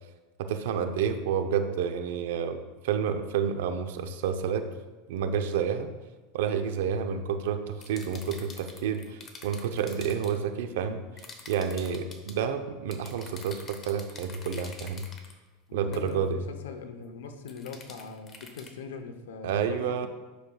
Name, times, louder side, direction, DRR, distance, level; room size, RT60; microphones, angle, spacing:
voice 1, 0.4-2.6 2.8-4.7 5.1-5.9 6.3-11.0 11.5-15.0 15.7-16.5 19.4-20.1, right 7 dB, 80° right, 8 dB, 0.7 m, -29 dB
sound 1, 7.8-10.4 11.2-12.4 12.9-15.3 15.9-16.1 17.5-18.7, left 4 dB, 30° left, 1.0 m, -47 dB
voice 2, 15.7-20.1, left 5 dB, 90° left, 7 dB, 0.8 m, -41 dB
10.0 x 6.6 x 2.3 m, 1.2 s
supercardioid pair, 125°, 0 cm